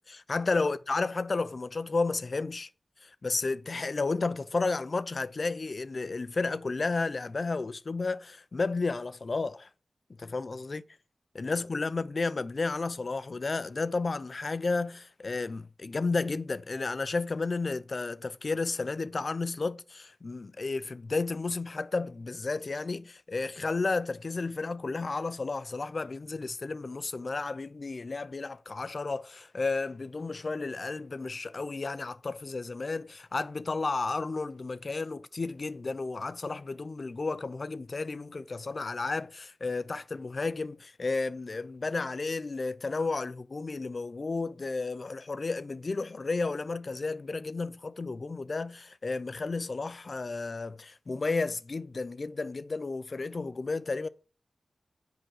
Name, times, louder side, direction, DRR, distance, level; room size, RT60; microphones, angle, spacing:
voice 1, 0.1-2.7 3.0-9.7 10.2-10.8 11.3-54.1, left 3 dB, 55° left, 0.6 m, -32 dB
7.8 x 5.2 x 6.4 m
cardioid pair, 50°, 0 cm